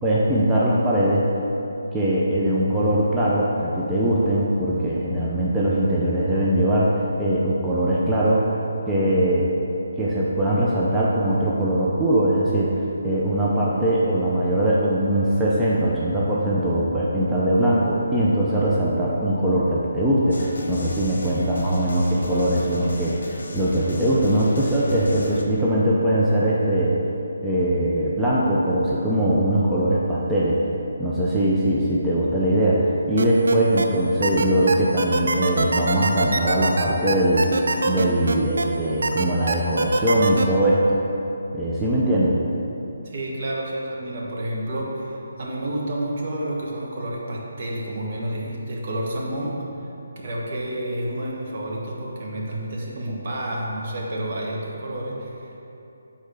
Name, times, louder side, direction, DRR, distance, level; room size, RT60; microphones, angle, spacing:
voice 1, 0.0-1.3 1.9-6.9 7.2-8.5 8.9-9.5 10.0-26.9 27.4-30.6 31.0-41.0 41.5-42.4, right 1 dB, 10° right, -8 dB, 0.6 m, -21 dB
sound 1, 20.3-25.4, left 2 dB, 65° left, 0.8 m, -34 dB
sound 2, 33.2-33.9 34.2-38.6 39.0-40.4, right 3 dB, 65° right, 0.5 m, -23 dB
voice 2, 43.0-49.6 50.2-55.6, right 1 dB, 50° right, -3 dB, 1.2 m, -30 dB
6.4 x 4.1 x 4.7 m, 2.9 s
figure-of-eight pair, 150°, 0 cm